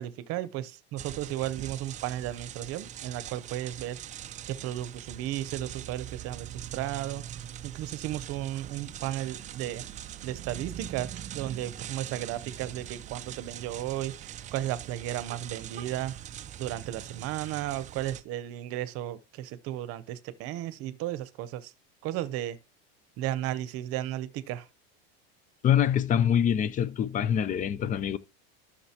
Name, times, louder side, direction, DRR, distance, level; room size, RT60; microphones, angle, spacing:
voice 1, 0.0-4.0 4.5-7.2 7.6-9.8 10.2-16.2 16.6-21.7 22.0-22.6 23.2-24.7, right 13 dB, 50° right, 0.9 m, -34 dB
sound 1, 1.0-18.2, right 11 dB, 25° right, 0.4 m, -42 dB
voice 2, 25.6-28.2, left 9 dB, 25° left, 0.5 m, -25 dB
13.0 x 6.5 x 2.9 m
supercardioid pair, 140°, 31 cm